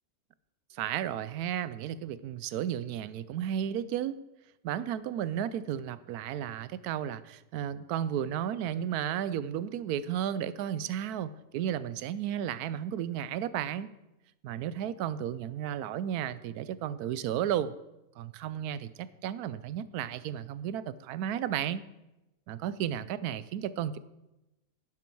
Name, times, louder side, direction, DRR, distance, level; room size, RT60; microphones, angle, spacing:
voice 1, 0.7-4.2 4.6-13.9 14.4-17.7 18.2-21.8 22.5-24.0, right 10 dB, 85° right, 16 dB, 1.1 m, -33 dB
11.0 x 10.5 x 4.6 m, 0.98 s
omnidirectional pair, 1.6 m